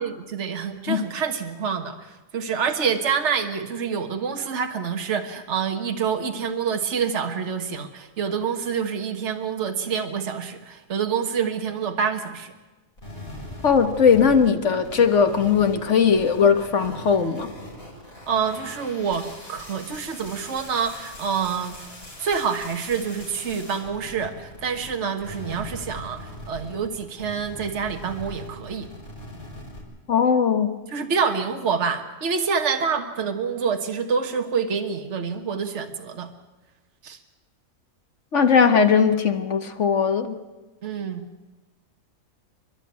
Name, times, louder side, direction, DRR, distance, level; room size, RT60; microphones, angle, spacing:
voice 1, 0.0-12.5 18.2-21.9 22.2-28.9 30.9-36.3 37.0-37.2 40.8-41.2, right 6 dB, 55° right, 5 dB, 1.6 m, -27 dB
sound 1, 13.0-24.9 25.2-29.8, left 1 dB, 75° left, 6.5 m, -41 dB
voice 2, 13.6-17.5 30.1-30.7 38.3-40.4, left 6 dB, 60° left, 9 dB, 1.7 m, -19 dB
29.5 x 11.0 x 9.5 m, 1.2 s
omnidirectional pair, 1.4 m